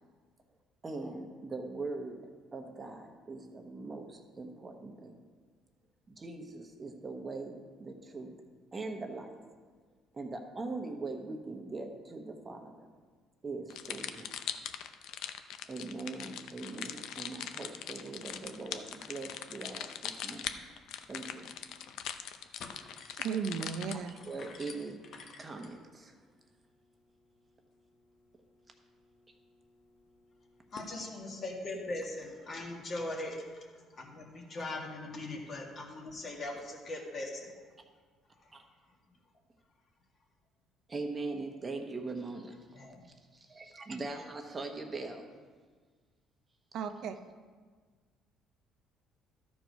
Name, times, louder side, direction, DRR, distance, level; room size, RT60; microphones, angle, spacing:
voice 1, 0.8-2.2 2.5-5.2 6.1-8.3 8.7-9.4 10.1-12.9 13.4-14.3 15.7-20.6 21.1-21.5 24.3-25.0 25.4-26.1 38.5-38.6 40.9-42.5 43.3-45.3, right 3 dB, 25° right, 4 dB, 1.0 m, -41 dB
sound 1, 13.7-24.1, left 10 dB, 75° left, 0.5 m, -41 dB
sound 2, 21.6-22.0 22.3-31.0, left 4 dB, 60° left, 1.0 m, -55 dB
voice 2, 23.2-24.2 46.7-47.2, right 6 dB, 70° right, 8 dB, 0.5 m, -35 dB
voice 3, 30.7-37.5 38.4-38.5 42.7-43.0, left 2 dB, 45° left, -1 dB, 1.9 m, -40 dB
12.5 x 4.6 x 5.3 m, 1.5 s
cardioid pair, 105°, 0 cm